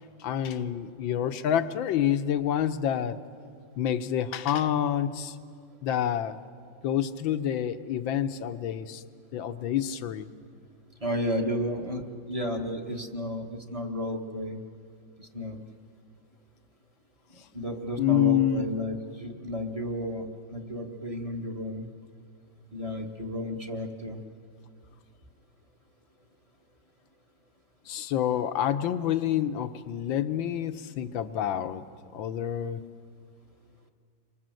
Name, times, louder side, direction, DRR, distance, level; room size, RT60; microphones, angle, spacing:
voice 1, 0.2-3.2 3.8-5.4 5.8-6.4 6.8-9.0 9.3-10.3 18.0-18.7 27.9-31.8 32.1-32.8, left 10 dB, 80° left, 10 dB, 1.6 m, -27 dB
voice 2, 11.0-14.6 15.2-15.6 17.5-21.9 22.7-24.2, equal, 20° right, 4 dB, 1.3 m, -33 dB
28.5 x 24.0 x 7.7 m, 2.2 s
omnidirectional pair, 2.1 m